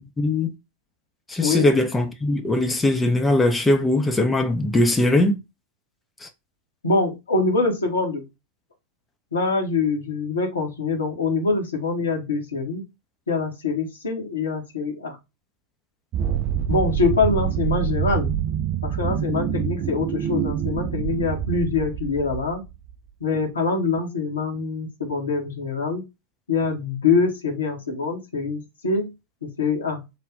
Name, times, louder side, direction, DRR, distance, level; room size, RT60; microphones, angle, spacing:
voice 1, 0.2-0.5 1.3-5.4 6.2-6.3, left 2 dB, 10° left, 0.5 m, -20 dB
voice 2, 6.8-8.2 9.3-12.8 13.3-15.2 16.7-18.3 18.8-22.6 23.2-26.0 26.5-29.1 29.4-30.0, left 4 dB, 70° left, 1.0 m, -24 dB
sound 1, 16.1-22.9, right 10 dB, 35° right, 0.3 m, -26 dB
3.4 x 2.2 x 3.6 m
figure-of-eight pair, 90°, 0 cm